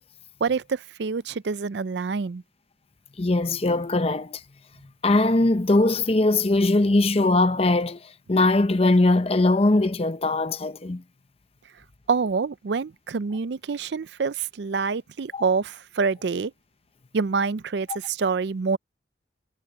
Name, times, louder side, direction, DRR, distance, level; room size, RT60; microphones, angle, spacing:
voice 1, 0.4-2.4 12.1-16.5 17.1-18.8, right 5 dB, 65° right, 0.5 m, -26 dB
voice 2, 3.2-4.4 5.0-8.0 8.3-11.0 15.3-15.5, left 2 dB, 30° left, 0.7 m, -21 dB
head